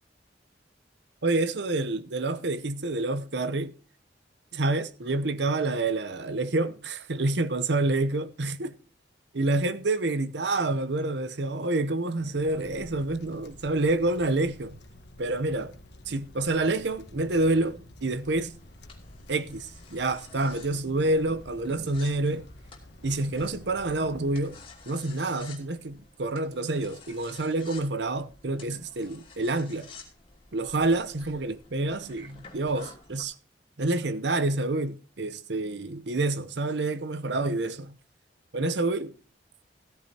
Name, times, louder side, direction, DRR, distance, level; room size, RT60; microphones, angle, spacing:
voice 1, 1.2-3.7 4.5-8.7 9.3-14.8 15.2-15.7 16.1-18.5 19.3-22.5 23.0-24.6 24.9-29.9 30.5-33.3 33.8-38.0 38.5-39.1, right 2 dB, 75° right, 0.8 m, -28 dB
Wind, 12.1-24.9, left 1 dB, 70° left, 1.4 m, -50 dB
sound 1, 18.2-33.2, left 4 dB, 30° left, 2.7 m, -51 dB
15.5 x 14.0 x 2.9 m
head